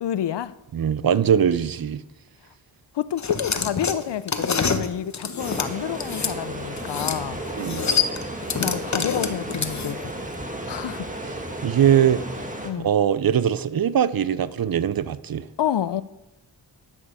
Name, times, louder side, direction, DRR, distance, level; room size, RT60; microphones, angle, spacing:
voice 1, 0.0-0.5 2.9-7.4 8.6-10.0 10.7-11.1 11.5-11.7 12.6-12.9 15.6-16.0, left 10 dB, 75° left, 0.6 m, -28 dB
voice 2, 0.7-2.0 7.5-7.8 11.6-12.2 12.8-15.5, right 9 dB, 55° right, 0.6 m, -21 dB
sound 1, 3.2-6.3 6.8-7.2 7.5-10.1, left 5 dB, 40° left, 1.0 m, -26 dB
sound 2, 5.4-12.7, right 1 dB, 20° right, 1.6 m, -33 dB
13.0 x 10.0 x 4.9 m
wide cardioid pair, 95°, 42 cm